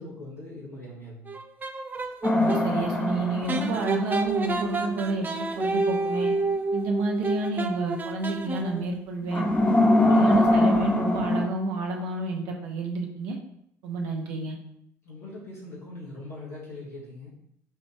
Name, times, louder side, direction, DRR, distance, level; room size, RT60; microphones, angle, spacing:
voice 1, 0.0-1.3 15.0-17.3, left 2 dB, 80° left, -8 dB, 1.7 m, -41 dB
sound 1, 1.3-2.7 3.5-8.9, right 3 dB, 20° right, 0.4 m, -29 dB
sound 2, 2.2-4.6 9.3-11.4, left 1 dB, 20° left, 0.8 m, -22 dB
voice 2, 2.3-6.3 6.7-9.5 10.1-13.4 13.8-14.6, right 2 dB, 60° right, 1 dB, 0.8 m, -30 dB
6.2 x 2.6 x 3.2 m, 0.73 s
figure-of-eight pair, 50°, 9 cm